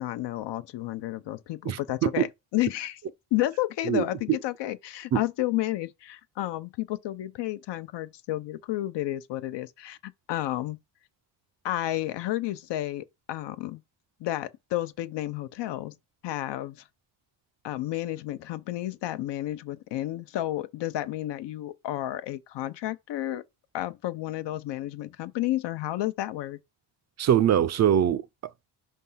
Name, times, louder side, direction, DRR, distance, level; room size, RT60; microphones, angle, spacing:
voice 1, 0.0-3.0 3.3-10.8 11.6-13.8 14.2-15.9 16.2-16.8 17.6-23.4 23.7-26.6, left 15 dB, 80° left, 0.8 m, -31 dB
voice 2, 1.7-2.3 3.8-4.4 5.1-5.2 27.2-28.2, right 10 dB, 40° right, 0.4 m, -23 dB
5.6 x 3.6 x 5.6 m
cardioid pair, 150°, 42 cm